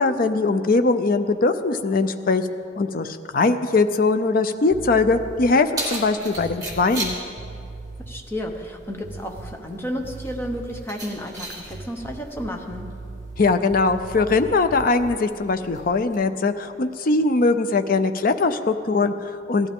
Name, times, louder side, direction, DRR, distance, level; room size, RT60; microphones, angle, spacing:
voice 1, 0.0-2.5 2.8-7.2 13.4-19.7, left 3 dB, 50° left, 9 dB, 0.5 m, -21 dB
sound 1, 4.7-5.7 6.3-8.3 9.0-9.8 10.0-11.0 11.7-15.3, right 3 dB, 55° right, 0.6 m, -39 dB
Keys jangling, 5.1-16.1, right 2 dB, 20° right, 2.3 m, -38 dB
voice 2, 8.1-12.9, equal, 10° left, 2 dB, 1.0 m, -32 dB
17.0 x 12.5 x 3.6 m, 2.6 s
head